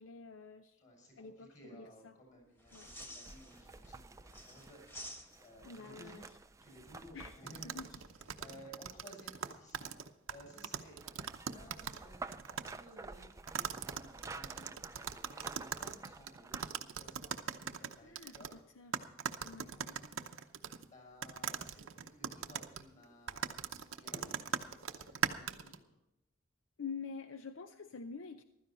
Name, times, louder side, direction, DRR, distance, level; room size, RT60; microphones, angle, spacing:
voice 1, 0.0-0.8 1.2-2.2 2.7-2.9 5.6-6.4 7.1-8.0 18.0-18.4 18.8-19.1 19.4-19.7 25.6-25.8 26.8-28.4, left 5 dB, 75° left, 9 dB, 0.6 m, -47 dB
voice 2, 0.8-4.0 4.3-6.2 6.6-8.0 8.3-11.0 11.3-18.6 19.7-20.0 20.9-25.9, equal, 35° left, 0 dB, 6.5 m, -57 dB
sound 1, 2.6-3.9 4.2-5.7 8.2-8.5, equal, 10° left, 1.3 m, -51 dB
sound 2, 2.7-8.9 10.5-16.9 17.2-17.3, right 3 dB, 15° right, 0.4 m, -51 dB
sound 3, 7.5-12.0 12.3-12.7 13.5-18.5 18.9-20.9 21.2-25.8, right 7 dB, 80° right, 0.8 m, -40 dB
15.0 x 13.0 x 4.3 m, 0.89 s
head